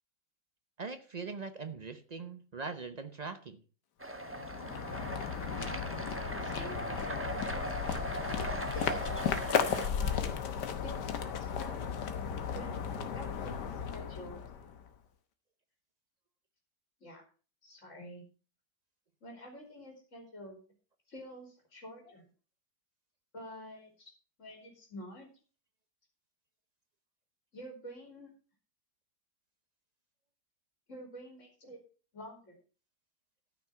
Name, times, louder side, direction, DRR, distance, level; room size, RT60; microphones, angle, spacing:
voice 1, 0.8-3.6, right 4 dB, 45° right, 9 dB, 0.5 m, -41 dB
sound 1, 4.0-9.9, right 1 dB, 10° right, 0.8 m, -39 dB
sound 2, 4.1-14.9, left 7 dB, 85° left, 1.7 m, -35 dB
voice 2, 6.4-10.3 10.8-11.8 12.5-12.8 13.1-14.5 17.0-17.2 17.6-18.2 19.2-20.6 21.1-22.2 23.3-24.1 24.4-25.3 27.5-28.3 30.9-31.8 32.1-32.6, equal, 45° left, 1 dB, 3.2 m, -48 dB
13.0 x 6.1 x 5.6 m, 0.38 s
omnidirectional pair, 1.8 m